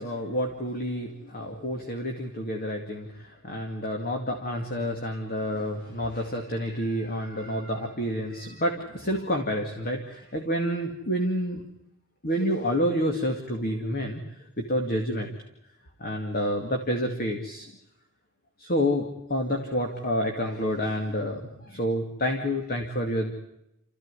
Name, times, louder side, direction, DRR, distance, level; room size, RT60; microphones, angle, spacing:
voice 1, 0.0-11.6 12.2-15.3 16.0-17.7 18.6-23.4, equal, 45° left, 4 dB, 2.3 m, -29 dB
28.5 x 15.0 x 9.8 m, 0.85 s
head